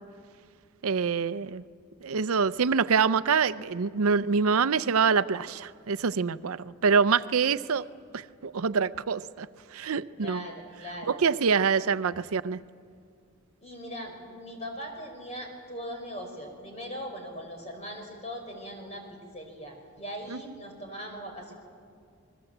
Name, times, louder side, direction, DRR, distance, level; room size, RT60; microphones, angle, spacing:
voice 1, 0.8-1.6 2.0-7.8 8.1-10.4 11.1-12.6 20.3-20.4, right 5 dB, 80° right, 15 dB, 0.6 m, -25 dB
voice 2, 10.1-11.2 13.6-21.5, equal, 30° left, 3 dB, 5.0 m, -40 dB
29.5 x 21.0 x 7.9 m, 2.2 s
head